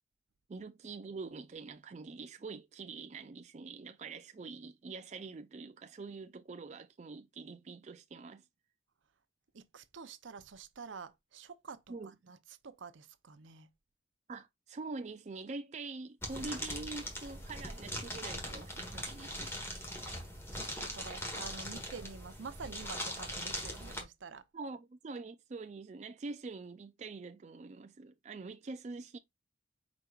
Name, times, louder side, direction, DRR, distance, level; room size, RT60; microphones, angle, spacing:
voice 1, 0.5-8.5 11.9-12.1 14.3-19.5 24.5-29.2, right 3 dB, 35° right, 0.3 m, -45 dB
voice 2, 9.5-13.7 20.0-20.1 20.5-24.4, right 5 dB, 80° right, 0.6 m, -48 dB
Opening a bag of candy, 16.2-24.0, equal, 15° left, 1.3 m, -41 dB
5.1 x 4.5 x 2.4 m
head